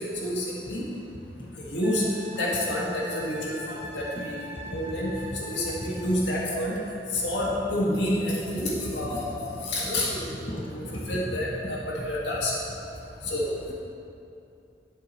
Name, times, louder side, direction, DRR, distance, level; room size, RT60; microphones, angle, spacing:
voice 1, 0.2-0.8 1.7-2.0 2.4-4.3 4.7-5.1 5.4-6.7 7.1-10.3 11.1-11.8 12.0-12.5 13.3-13.6, left 1 dB, 85° left, -5 dB, 1.9 m, -28 dB
voice 2, 1.1-1.5 2.3-2.6 3.8-4.3 4.5-4.9 5.1-5.3 5.5-6.2 7.1-7.2 8.6-8.7 9.1-10.1 10.5-11.5 13.2-13.3, equal, 30° left, -4 dB, 0.9 m, -39 dB
Wind instrument woodwind instrument, 1.8-6.1 8.8-8.9, equal, 85° right, 2.0 m, -42 dB
11.0 x 7.7 x 3.1 m, 2.7 s
head